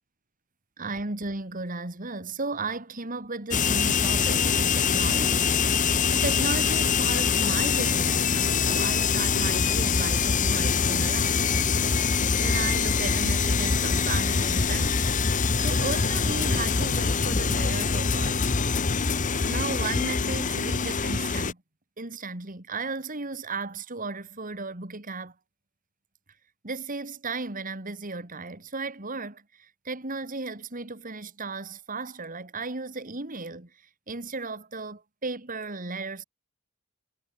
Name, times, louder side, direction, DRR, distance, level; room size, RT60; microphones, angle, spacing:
voice 1, 0.8-11.7 12.4-18.4 19.4-21.6 22.0-25.3 26.6-33.7 34.1-36.2, right 3 dB, 40° right, 2.6 m, -35 dB
sound 1, 3.5-21.5, left 5 dB, 40° left, 1.0 m, -24 dB
head